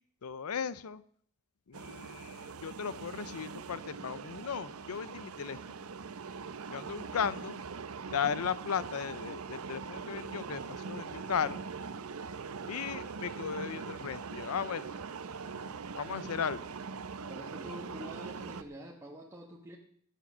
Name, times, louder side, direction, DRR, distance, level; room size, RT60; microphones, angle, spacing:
voice 1, 0.2-1.0 1.7-5.6 6.7-7.6 8.1-11.6 12.7-14.9 15.9-16.6, left 7 dB, 90° left, 17 dB, 0.6 m, -36 dB
sound 1, 1.7-18.6, right 5 dB, 85° right, 0.7 m, -42 dB
voice 2, 17.3-19.8, equal, 15° right, 0 dB, 1.3 m, -46 dB
16.0 x 8.9 x 6.1 m, 0.62 s
head